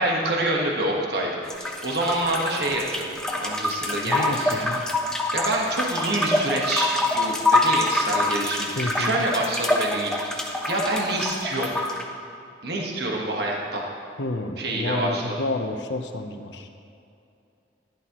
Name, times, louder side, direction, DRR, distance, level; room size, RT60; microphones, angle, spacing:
voice 1, 0.0-4.9 5.3-11.7 12.6-13.8 14.6-15.4, right 1 dB, 60° right, -1 dB, 1.4 m, -27 dB
sound 1, 1.4-12.0, left 2 dB, 5° left, 0.8 m, -26 dB
voice 2, 4.0-4.8 8.8-9.2 14.2-16.7, left 2 dB, 75° left, 6 dB, 0.8 m, -30 dB
15.0 x 11.0 x 3.0 m, 2.6 s
head